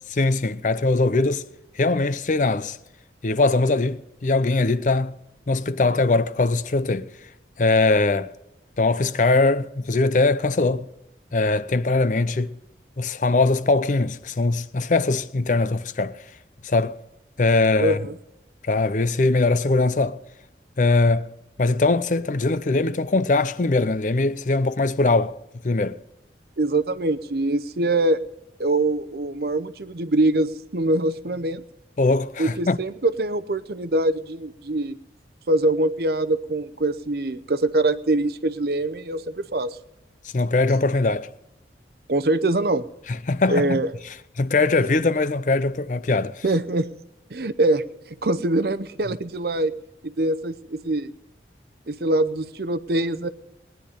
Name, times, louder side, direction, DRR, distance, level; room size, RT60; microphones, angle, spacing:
voice 1, 0.2-1.5 1.8-2.8 3.2-5.2 5.5-7.1 7.6-8.3 8.8-10.9 11.3-12.6 13.0-16.2 16.6-17.0 17.4-18.0 18.6-20.2 20.8-21.3 21.6-25.4 25.6-26.0 32.0-32.8 40.3-41.3 43.1-43.8 44.4-46.4, left 3 dB, 45° left, 0.5 m, -21 dB
voice 2, 17.8-18.1 26.6-28.2 28.6-31.6 32.4-35.0 35.5-39.8 42.1-42.9 43.5-43.9 46.4-46.9 47.3-49.8 50.0-51.1 51.9-53.3, right 2 dB, 55° right, 0.7 m, -23 dB
19.5 x 10.5 x 5.1 m
head